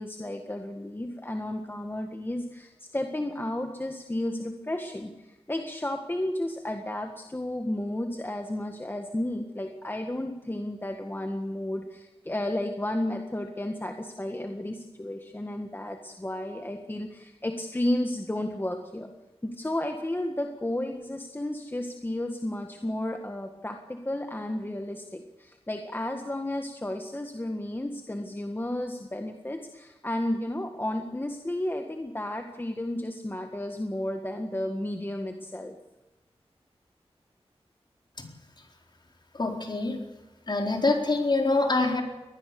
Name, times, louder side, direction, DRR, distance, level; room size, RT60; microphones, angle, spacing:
voice 1, 0.0-19.1 19.4-35.7, left 1 dB, 20° left, 4 dB, 1.7 m, -32 dB
voice 2, 39.3-40.0 40.5-42.0, left 3 dB, 45° left, 2 dB, 4.2 m, -25 dB
23.0 x 19.5 x 6.9 m, 1.1 s
wide cardioid pair, 95°, 11 cm